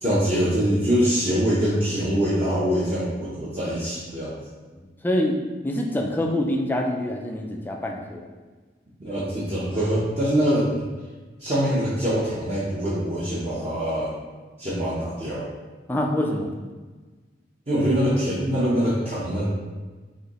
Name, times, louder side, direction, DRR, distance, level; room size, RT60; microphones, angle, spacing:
voice 1, 0.0-4.4 9.0-10.8 11.4-14.1 14.6-15.5 17.7-19.4, equal, 35° right, -10 dB, 0.8 m, -24 dB
voice 2, 5.0-5.4 5.6-8.3 15.9-16.5, left 1 dB, 10° left, 1 dB, 0.3 m, -25 dB
4.9 x 2.7 x 3.0 m, 1.3 s
head